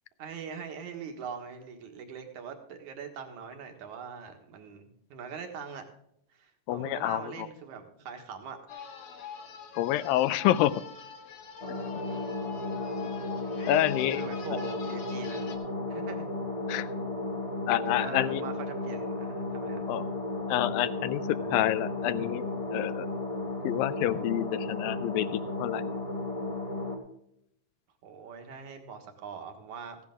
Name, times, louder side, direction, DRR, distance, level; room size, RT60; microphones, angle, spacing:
voice 1, 0.2-5.8 6.3-8.9 14.1-15.5 15.9-16.3 17.8-19.8 28.0-30.0, right 6 dB, 65° right, 5 dB, 2.8 m, -42 dB
voice 2, 6.7-7.5 9.7-10.8 13.7-14.2 16.7-16.9 17.7-18.4 19.9-20.0 20.5-23.1 23.6-25.8, left 13 dB, 90° left, 15 dB, 2.4 m, -28 dB
sound 1, 8.7-15.6, left 7 dB, 55° left, 1.9 m, -44 dB
sound 2, 11.6-27.0, left 2 dB, 25° left, 1.7 m, -34 dB
15.0 x 10.5 x 3.6 m, 0.72 s
omnidirectional pair, 4.0 m